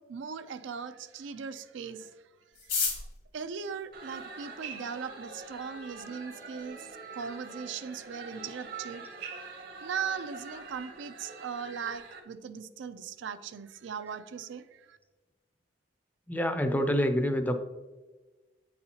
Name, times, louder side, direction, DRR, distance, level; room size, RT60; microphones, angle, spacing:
voice 1, 0.1-2.2 2.6-2.8 3.3-6.9 7.1-15.0, right 6 dB, 85° right, 11 dB, 0.4 m, -39 dB
sound 1, 2.5-4.8 5.6-5.7 5.9-6.0 6.3-6.7 7.1-7.2 7.3-7.8 8.1-8.3 8.6-8.9, left 5 dB, 80° left, 1.8 m, -34 dB
sound 2, 3.9-12.2, right 4 dB, 50° right, 0.8 m, -44 dB
voice 2, 16.3-17.6, equal, 10° left, 7 dB, 0.4 m, -27 dB
8.5 x 4.2 x 2.8 m, 1.2 s
head